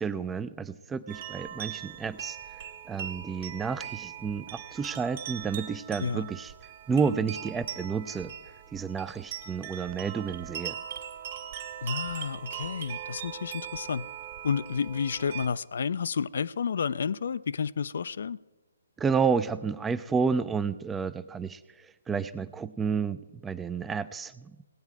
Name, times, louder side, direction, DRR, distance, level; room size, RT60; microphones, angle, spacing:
voice 1, 0.0-2.4 2.9-6.5 6.9-8.3 8.7-10.8 19.0-24.5, right 5 dB, 10° right, 0.4 m, -30 dB
sound 1, 1.1-15.5, right 10 dB, 45° right, 1.6 m, -40 dB
voice 2, 11.8-14.1 14.4-18.4, left 6 dB, 60° left, 0.4 m, -31 dB
18.0 x 8.9 x 4.7 m
figure-of-eight pair, 140°, 0 cm